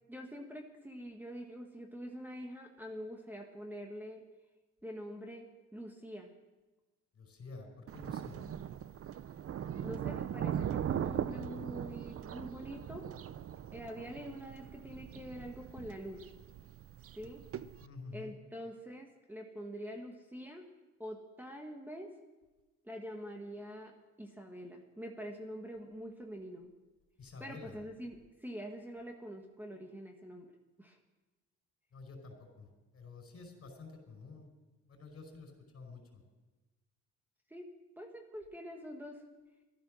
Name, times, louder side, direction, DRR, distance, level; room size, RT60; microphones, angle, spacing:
voice 1, 0.1-4.2 4.8-5.5 5.7-6.3 9.8-13.0 13.7-16.3 17.1-17.4 18.1-20.6 21.0-22.1 22.8-23.9 24.2-26.7 27.4-30.5 30.8-31.0 37.5-37.7 38.0-39.2, equal, 5° right, 2 dB, 1.6 m, -45 dB
voice 2, 7.1-8.4 17.8-18.3 27.2-27.8 31.9-32.7 32.9-34.5 34.9-36.0, left 4 dB, 50° left, 4 dB, 4.9 m, -49 dB
Thunder, 7.9-17.9, right 9 dB, 50° right, 0.6 m, -40 dB
15.0 x 13.0 x 6.4 m, 1.2 s
cardioid pair, 90°, 30 cm